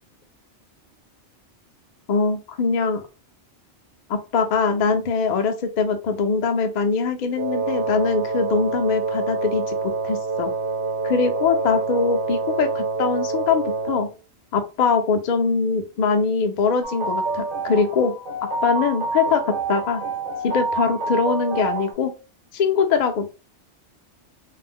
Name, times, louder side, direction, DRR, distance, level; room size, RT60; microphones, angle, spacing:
voice 1, 2.1-3.0 4.1-9.7 10.0-10.5 11.0-14.1 14.5-18.1 18.6-20.0 20.4-22.1 22.5-23.3, left 5 dB, 55° left, 7 dB, 0.5 m, -22 dB
Wind instrument woodwind instrument, 7.4-14.1, right 4 dB, 85° right, 0.9 m, -26 dB
sound 1, 16.8-21.9, right 3 dB, 50° right, 0.9 m, -28 dB
2.4 x 2.0 x 3.5 m, 0.32 s
omnidirectional pair, 1.2 m